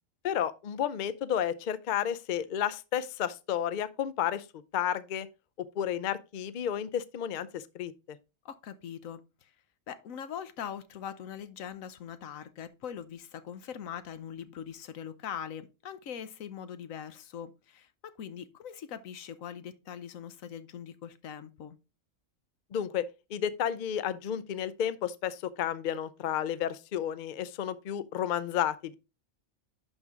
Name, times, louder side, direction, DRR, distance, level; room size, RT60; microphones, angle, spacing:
voice 1, 0.2-4.4 4.7-5.3 5.6-8.2 22.7-28.9, left 9 dB, 55° left, 0.5 m, -32 dB
voice 2, 8.4-9.5 9.9-21.8, left 8 dB, 85° left, 1.2 m, -42 dB
11.0 x 4.5 x 3.6 m
omnidirectional pair, 1.4 m